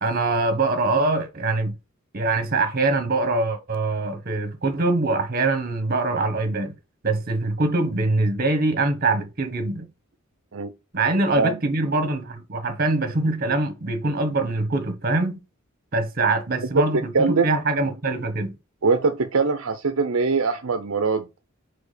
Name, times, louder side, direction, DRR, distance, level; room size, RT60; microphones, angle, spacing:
voice 1, 0.0-1.7 2.1-6.7 7.0-9.9 10.9-15.4 15.9-18.5, right 2 dB, 45° right, 1.3 m, -23 dB
voice 2, 17.1-17.5 18.8-21.3, right 4 dB, 70° right, 0.6 m, -22 dB
4.8 x 4.6 x 4.9 m
head